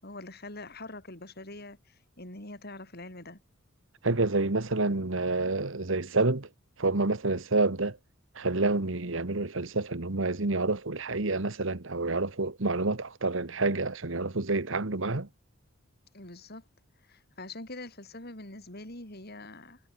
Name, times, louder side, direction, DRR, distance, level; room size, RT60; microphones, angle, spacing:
voice 1, 0.0-3.4 16.1-16.6 17.0-19.8, left 2 dB, 50° left, 7.1 m, -44 dB
voice 2, 4.0-6.5 6.8-8.0 8.3-15.3, right 3 dB, 70° right, 1.5 m, -28 dB
head